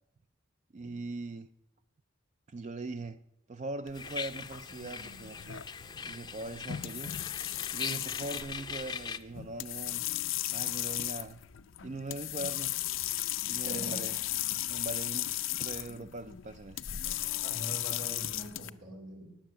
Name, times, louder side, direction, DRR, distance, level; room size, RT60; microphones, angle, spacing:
voice 1, 0.7-1.5 2.5-3.2 3.5-5.6 6.1-7.2 7.7-10.0 10.5-11.4 11.8-12.7 13.5-14.1 14.6-16.8, right 2 dB, 35° right, 0.4 m, -41 dB
sound 1, 3.9-18.7, left 14 dB, 85° left, 0.6 m, -36 dB
sound 2, 3.9-9.2, left 6 dB, 20° left, 0.5 m, -41 dB
voice 2, 13.6-14.0 17.4-19.4, right 1 dB, 90° right, 3.2 m, -43 dB
19.0 x 7.5 x 6.9 m
head